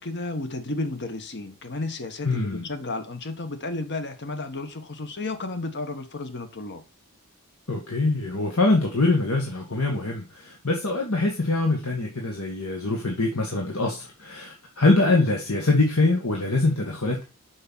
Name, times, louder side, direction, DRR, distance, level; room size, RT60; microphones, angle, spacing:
voice 1, 0.0-6.8, left 2 dB, 50° left, 1.4 m, -32 dB
voice 2, 2.2-2.6 7.7-17.2, left 2 dB, 70° left, 1.8 m, -23 dB
6.4 x 5.8 x 6.2 m
head